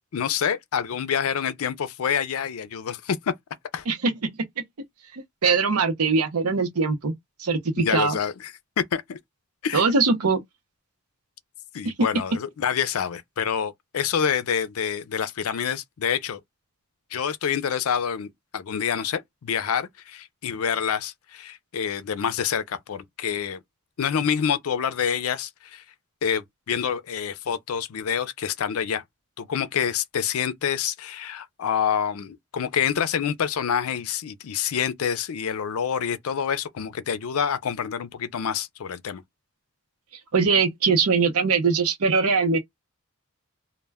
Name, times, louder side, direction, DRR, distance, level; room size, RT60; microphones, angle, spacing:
voice 1, 0.1-3.3 3.7-3.8 7.8-8.5 8.9-9.2 9.6-9.8 11.7-16.4 17.1-23.6 24.0-25.8 26.2-29.0 29.4-39.2, left 7 dB, 75° left, 0.4 m, -27 dB
voice 2, 5.1-7.1 7.4-8.2 9.7-10.4 40.3-42.6, right 4 dB, 85° right, 0.7 m, -21 dB
2.1 x 2.1 x 3.3 m
head